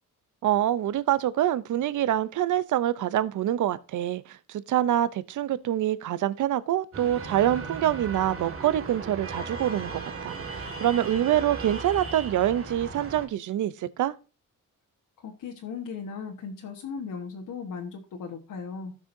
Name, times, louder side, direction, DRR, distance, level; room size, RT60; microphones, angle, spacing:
voice 1, 0.4-14.1, right 12 dB, 65° right, 0.6 m, -26 dB
sound 1, 6.9-13.3, right 4 dB, 40° right, 1.9 m, -37 dB
voice 2, 15.2-19.0, left 5 dB, 75° left, 1.5 m, -37 dB
16.5 x 6.3 x 2.7 m
wide cardioid pair, 155°, 33 cm